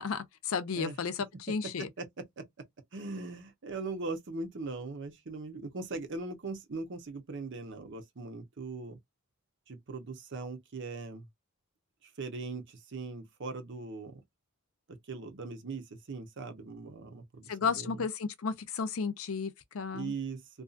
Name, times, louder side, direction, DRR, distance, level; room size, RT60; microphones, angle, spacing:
voice 1, 0.0-1.9 17.5-20.1, left 5 dB, 75° left, 0.5 m, -33 dB
voice 2, 2.4-2.7 2.9-9.0 9.7-11.3 12.0-14.2 14.9-18.0 19.9-20.6, right 3 dB, 60° right, 0.8 m, -40 dB
2.6 x 2.3 x 2.4 m
head